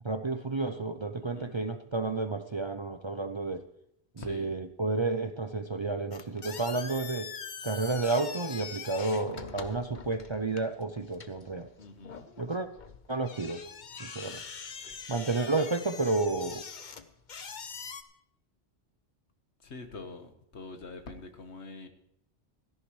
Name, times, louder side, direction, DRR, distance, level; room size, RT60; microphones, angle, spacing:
voice 1, 0.0-3.7 4.1-7.3 7.6-11.7 12.4-12.7 13.1-13.6 14.0-14.4 15.1-16.6, right 3 dB, 35° right, 9 dB, 0.5 m, -31 dB
voice 2, 4.2-4.5 11.8-12.3 19.6-21.9, left 3 dB, 80° left, 6 dB, 1.7 m, -45 dB
sound 1, 6.1-18.0, left 6 dB, 45° left, 0.9 m, -43 dB
16.5 x 13.5 x 3.1 m, 0.76 s
omnidirectional pair, 1.1 m